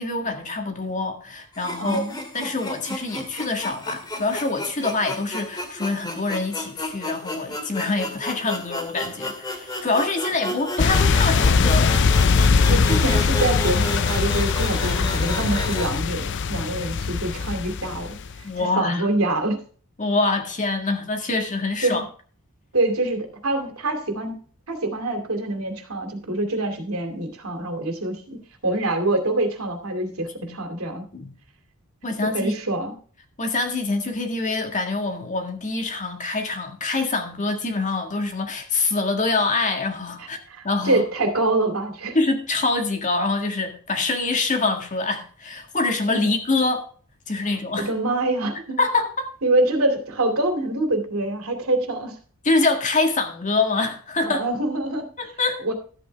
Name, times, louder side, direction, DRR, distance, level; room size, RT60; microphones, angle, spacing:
voice 1, 0.0-2.0 2.3-12.0 18.4-19.1 20.0-22.0 30.4-30.5 31.1-31.3 32.0-32.5 33.4-40.4 40.6-41.0 42.1-46.9 47.3-47.9 48.8-49.3 52.4-54.4 55.2-55.6, left 3 dB, 35° left, 1.8 m, -25 dB
sound 1, 1.5-15.9, left 1 dB, 20° left, 2.1 m, -33 dB
voice 2, 1.8-2.1 12.7-18.1 18.6-19.6 21.8-22.0 22.7-28.4 28.6-31.1 32.2-33.0 40.5-42.2 46.1-46.4 47.8-48.8 49.4-52.1 54.2-55.1 55.6-55.7, right 2 dB, 70° right, 2.6 m, -25 dB
sound 2, 10.8-18.4, left 5 dB, 55° left, 0.5 m, -21 dB
13.0 x 8.6 x 3.4 m
head